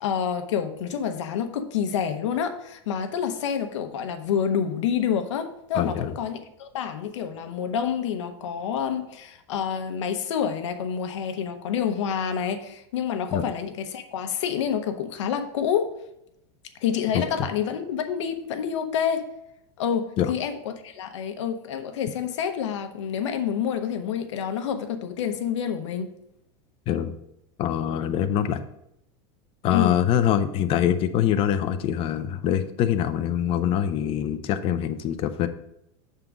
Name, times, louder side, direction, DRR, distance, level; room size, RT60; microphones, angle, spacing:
voice 1, 0.0-15.9 16.8-19.3 19.8-26.1 29.7-30.0, left 8 dB, 85° left, 0.9 m, -28 dB
voice 2, 5.7-6.1 13.3-13.4 17.1-17.4 20.2-20.3 26.9-27.1 27.6-28.6 29.6-35.5, left 10 dB, 40° left, 0.6 m, -24 dB
6.6 x 3.7 x 6.0 m
supercardioid pair, 135°, 15 cm